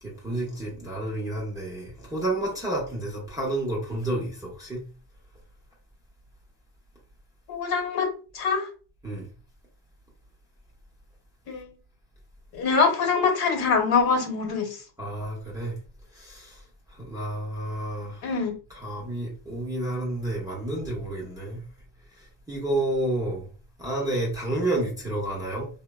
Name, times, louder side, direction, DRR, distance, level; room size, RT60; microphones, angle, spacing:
voice 1, 0.0-4.8 9.0-9.3 15.0-15.8 16.1-16.6 16.9-18.4 18.7-21.6 22.1-23.5 23.8-25.7, right 1 dB, 5° right, 0.6 m, -30 dB
voice 2, 7.5-8.1 8.3-8.7 11.5-11.7 12.5-14.8 18.2-18.5, left 5 dB, 50° left, 1.0 m, -24 dB
3.0 x 2.1 x 2.2 m
supercardioid pair, 115°, 50 cm